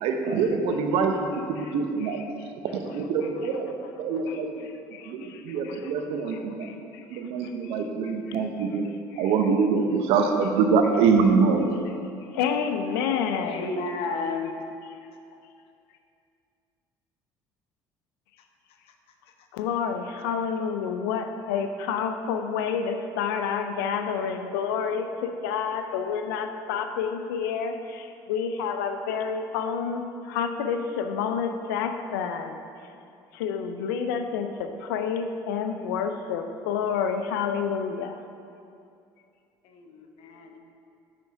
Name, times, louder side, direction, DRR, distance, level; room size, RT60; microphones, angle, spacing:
voice 1, 0.0-2.2 2.7-4.7 5.1-6.7 7.1-8.8 9.2-11.8, right 5 dB, 75° right, 4 dB, 0.8 m, -24 dB
voice 2, 2.0-2.5 4.3-4.4 4.7-5.9 6.2-7.8 8.3-8.4 9.1-9.3 12.3-13.8 19.5-32.6 33.3-38.2, left 6 dB, 90° left, 7 dB, 0.5 m, -29 dB
voice 3, 13.3-14.5 39.7-40.6, left 3 dB, 70° left, 4 dB, 0.9 m, -32 dB
7.7 x 4.5 x 5.8 m, 2.5 s
supercardioid pair, 80°, 10 cm